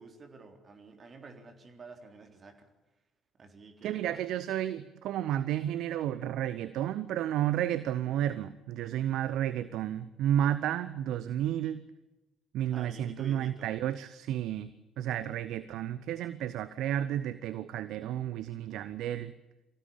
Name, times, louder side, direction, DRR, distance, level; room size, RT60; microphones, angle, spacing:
voice 1, 0.0-2.7 3.4-4.2 12.7-13.8, right 4 dB, 40° right, 5 dB, 3.7 m, -50 dB
voice 2, 3.8-11.8 12.5-14.7 15.0-19.3, right 11 dB, 60° right, 14 dB, 0.8 m, -32 dB
24.5 x 16.0 x 8.7 m, 1.1 s
figure-of-eight pair, 50°, 0 cm